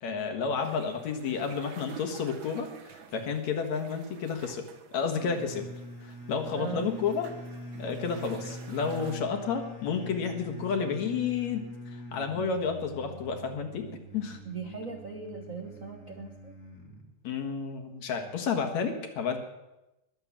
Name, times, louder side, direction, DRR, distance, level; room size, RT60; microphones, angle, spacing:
voice 1, 0.0-4.7 4.9-5.7 6.0-7.3 7.8-14.4 17.2-19.4, left 6 dB, 65° left, 4 dB, 2.8 m, -31 dB
sound 1, 0.6-9.2, right 8 dB, 75° right, 2.6 m, -51 dB
sound 2, 5.2-17.1, equal, 30° left, 2.3 m, -44 dB
voice 2, 6.5-6.9 14.4-16.5, right 5 dB, 55° right, 3 dB, 0.9 m, -39 dB
21.5 x 7.7 x 7.4 m, 0.96 s
omnidirectional pair, 3.5 m